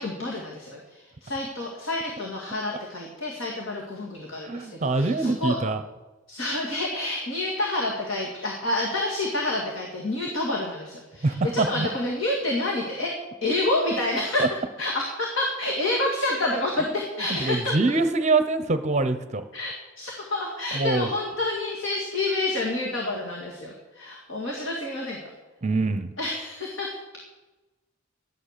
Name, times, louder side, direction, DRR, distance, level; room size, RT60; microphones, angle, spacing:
voice 1, 0.0-5.6 6.3-14.4 14.8-17.8 19.5-25.2 26.2-27.0, left 2 dB, 65° left, -1 dB, 2.3 m, -28 dB
voice 2, 4.4-5.8 11.2-11.9 14.4-14.5 17.4-19.4 20.7-21.1 25.6-26.1, right 3 dB, 30° right, 10 dB, 0.7 m, -24 dB
13.0 x 10.0 x 6.7 m, 1.1 s
head